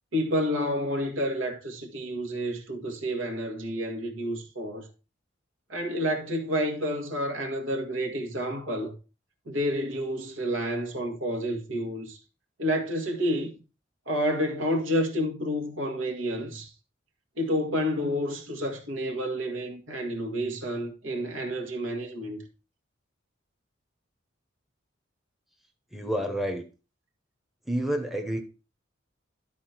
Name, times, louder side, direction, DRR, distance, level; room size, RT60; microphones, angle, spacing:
voice 1, 0.1-4.9 5.7-8.9 9.5-12.2 12.6-13.5 14.1-16.7 17.4-22.4, equal, 75° right, 1.8 m, -29 dB
voice 2, 25.9-26.6 27.7-28.4, right 1 dB, ahead, 0.9 m, -29 dB
12.0 x 4.3 x 4.3 m
head